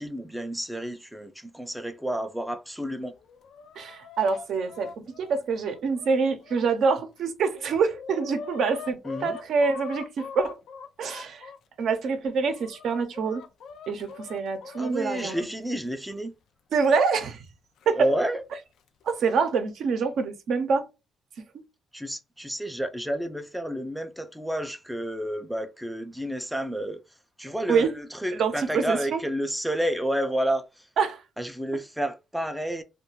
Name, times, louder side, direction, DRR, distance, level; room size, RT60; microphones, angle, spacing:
voice 1, 0.0-3.1 9.0-9.4 14.8-16.3 17.9-18.4 21.9-27.0 27.4-30.9 31.4-32.8, right 1 dB, 5° right, 0.4 m, -30 dB
Chicken rooster, 3.1-6.6 7.2-7.3 7.5-11.6 12.2-15.5 16.7-16.8 17.8-17.9 18.9-19.2, left 5 dB, 80° left, 0.4 m, -42 dB
voice 2, 3.8-10.6 11.0-11.5 11.8-13.4 13.9-15.3 16.7-17.4 17.9-18.1 19.0-20.9 27.7-27.9 28.3-29.2 31.0-31.2, right 5 dB, 70° right, 0.6 m, -26 dB
2.3 x 2.2 x 3.0 m
cardioid pair, 90°, 0 cm